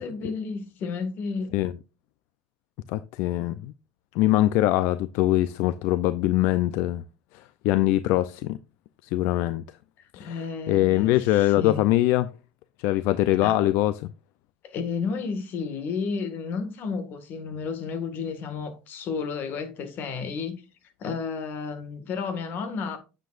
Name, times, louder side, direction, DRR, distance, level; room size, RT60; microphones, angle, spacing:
voice 1, 0.0-1.5 10.2-11.8 13.4-13.6 14.6-20.6 21.0-23.0, left 5 dB, 50° left, 1.8 m, -32 dB
voice 2, 2.9-3.7 4.1-7.0 7.3-8.6 9.1-9.6 10.1-12.3 12.8-14.1, left 15 dB, 70° left, 0.5 m, -23 dB
9.2 x 7.5 x 2.5 m
cardioid pair, 135°, 4 cm